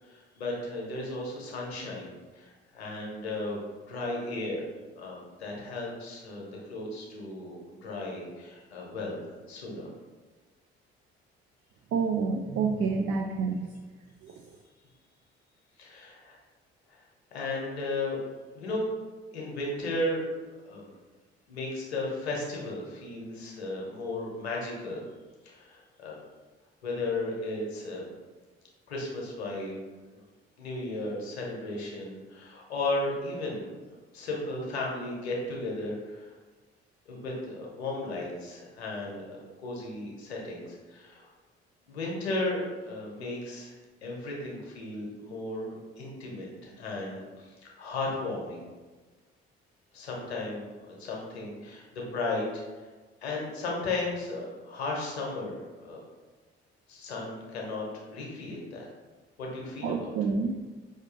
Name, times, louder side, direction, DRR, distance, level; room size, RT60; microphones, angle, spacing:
voice 1, 0.0-3.6 3.9-4.7 5.0-9.2 9.5-9.9 15.8-16.4 16.9-17.0 17.3-18.2 18.5-18.9 19.3-20.2 20.7-20.9 21.5-25.0 25.4-26.2 26.8-28.0 28.9-29.8 30.6-33.7 34.1-36.3 37.1-41.3 41.9-43.7 44.0-48.6 49.9-52.9 53.2-56.0 56.9-58.9 59.4-60.1, left 2 dB, 85° left, -2 dB, 0.9 m, -35 dB
voice 2, 11.9-13.6 14.2-14.3 59.8-60.7, right 5 dB, 45° right, 4 dB, 0.5 m, -28 dB
5.1 x 2.6 x 3.7 m, 1.3 s
figure-of-eight pair, 45°, 32 cm